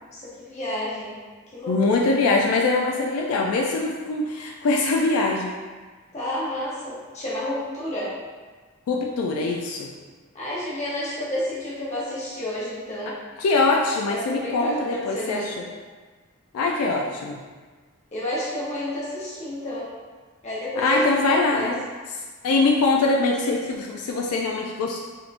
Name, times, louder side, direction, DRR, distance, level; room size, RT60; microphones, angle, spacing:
voice 1, 0.1-1.2 1.5-2.1 6.1-8.1 10.3-13.2 14.1-15.5 18.1-19.9 20.4-21.7, left 1 dB, 30° left, -7 dB, 0.7 m, -30 dB
voice 2, 1.7-5.5 8.9-9.9 13.4-15.6 16.5-17.4 20.8-21.8 22.4-25.0, left 3 dB, 80° left, 0 dB, 0.3 m, -23 dB
3.4 x 2.6 x 2.4 m, 1.4 s
head